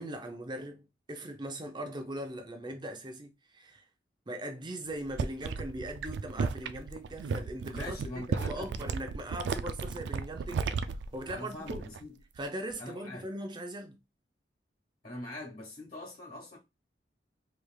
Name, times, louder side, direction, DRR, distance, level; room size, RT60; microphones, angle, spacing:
voice 1, 0.0-3.8 4.3-11.8 12.4-14.0, right 1 dB, 25° right, 0.6 m, -40 dB
sound 1, 4.9-12.1 12.4-12.7, right 5 dB, 75° right, 0.3 m, -35 dB
voice 2, 7.7-8.7 11.3-12.2 12.8-13.3 15.0-16.6, left 2 dB, 45° left, 1.5 m, -43 dB
3.4 x 3.2 x 2.3 m
head